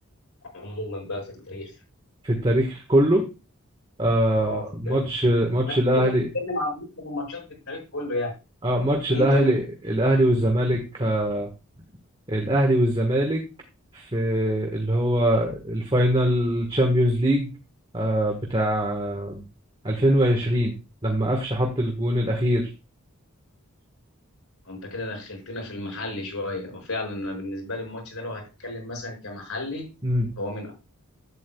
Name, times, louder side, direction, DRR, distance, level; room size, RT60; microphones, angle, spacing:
voice 1, 0.5-1.8 4.4-5.0 5.6-8.3 9.1-9.6 24.6-29.9 30.4-30.7, left 2 dB, 90° left, 1 dB, 5.7 m, -32 dB
voice 2, 2.2-3.3 4.0-6.2 8.6-11.5 12.3-13.4 13.9-17.5 17.9-19.4 19.8-20.8 21.0-22.7 30.0-30.3, right 1 dB, 25° right, 1 dB, 1.4 m, -22 dB
11.0 x 8.9 x 2.3 m, 0.29 s
head